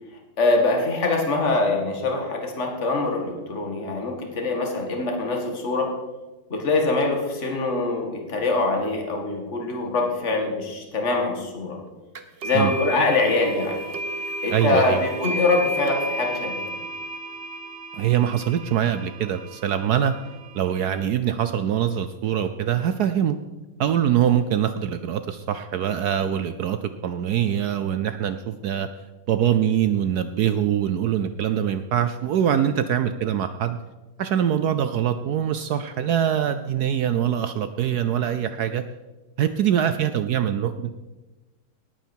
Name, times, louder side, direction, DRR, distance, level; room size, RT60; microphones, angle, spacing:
voice 1, 0.4-5.9 6.5-11.8 12.4-13.8 14.4-16.6, left 3 dB, 35° left, 2 dB, 2.3 m, -24 dB
sound 1, 12.2-21.0, right 1 dB, 45° right, 0.8 m, -33 dB
voice 2, 14.5-15.0 17.9-20.1 20.5-23.4 23.8-28.9 29.3-33.8 34.2-38.8 39.4-40.9, right 9 dB, 75° right, 11 dB, 0.9 m, -23 dB
18.5 x 9.0 x 4.5 m, 1.1 s
omnidirectional pair, 2.2 m